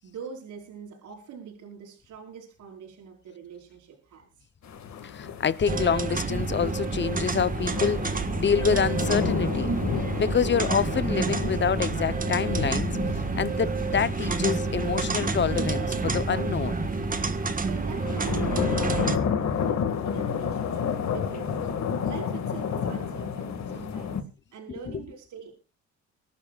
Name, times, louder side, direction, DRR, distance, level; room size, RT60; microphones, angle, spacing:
voice 1, 0.0-4.3 17.6-21.6 22.0-24.3 24.5-25.5, right 7 dB, 75° right, 5.2 m, -43 dB
sound 1, 4.6-24.2, left 7 dB, 65° left, 2.1 m, -32 dB
voice 2, 5.0-9.7 10.2-16.8, left 7 dB, 40° left, 0.9 m, -27 dB
sound 2, 5.7-19.2, right 4 dB, 30° right, 1.6 m, -29 dB
24.5 x 11.5 x 2.5 m
cardioid pair, 90°, 30 cm